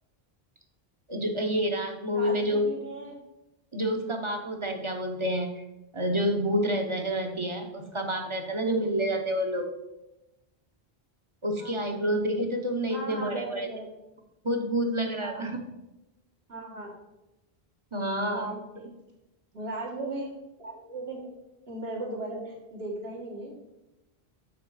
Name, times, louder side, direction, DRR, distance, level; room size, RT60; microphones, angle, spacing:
voice 1, 1.1-2.7 3.7-5.6 5.9-9.7 11.4-13.7 14.4-15.6 17.9-18.5 20.0-20.1, equal, 30° right, 4 dB, 1.0 m, -28 dB
voice 2, 2.1-3.2 4.3-4.4 11.6-12.0 12.9-13.9 15.2-15.4 16.5-16.9 18.3-18.9 19.5-20.3 20.6-21.3 21.7-23.5, right 2 dB, 70° right, -3 dB, 2.2 m, -37 dB
6.7 x 6.1 x 4.9 m, 0.95 s
omnidirectional pair, 1.0 m